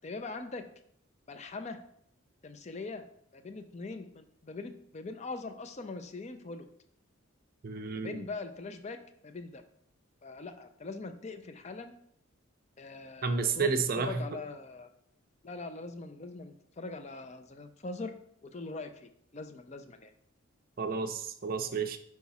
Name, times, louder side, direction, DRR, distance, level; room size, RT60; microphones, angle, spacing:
voice 1, 0.0-0.6 1.3-1.8 2.4-3.1 3.3-6.7 8.0-9.6 10.2-11.9 12.8-14.9 15.4-18.1 18.4-20.1, left 3 dB, 35° left, 9 dB, 0.5 m, -42 dB
voice 2, 7.6-8.2 13.2-14.2 20.8-22.0, right 5 dB, 45° right, 7 dB, 0.5 m, -31 dB
5.8 x 4.7 x 4.1 m, 0.68 s
head